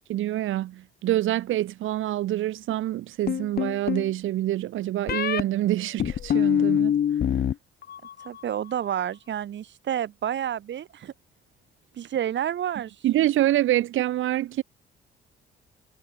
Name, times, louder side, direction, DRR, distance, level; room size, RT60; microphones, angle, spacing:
voice 1, 0.0-7.0 13.0-14.6, right 14 dB, 80° right, 3.4 m, -26 dB
sound 1, 3.3-4.1 5.1-5.4 6.0-7.5 7.8-8.4, left 9 dB, 50° left, 1.0 m, -24 dB
voice 2, 8.2-11.1 11.9-13.0, right 10 dB, 65° right, 5.8 m, -29 dB
cardioid pair, 90°, 20 cm